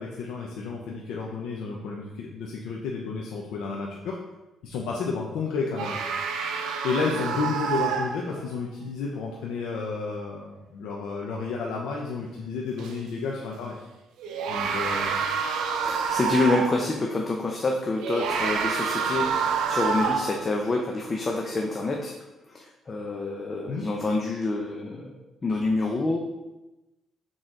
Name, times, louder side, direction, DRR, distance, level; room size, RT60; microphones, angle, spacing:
voice 1, 0.0-4.2 4.6-6.0 6.8-13.8 14.5-15.2 23.7-23.8, left 4 dB, 90° left, -2 dB, 0.7 m, -31 dB
sound 1, 5.8-8.5 12.8-12.9 14.2-16.9 18.0-20.4, right 6 dB, 90° right, 0.6 m, -28 dB
voice 2, 15.8-22.1 22.5-25.1 25.4-26.2, left 2 dB, 35° left, 1 dB, 0.6 m, -27 dB
6.3 x 3.9 x 3.8 m, 1.0 s
cardioid pair, 105°, 0 cm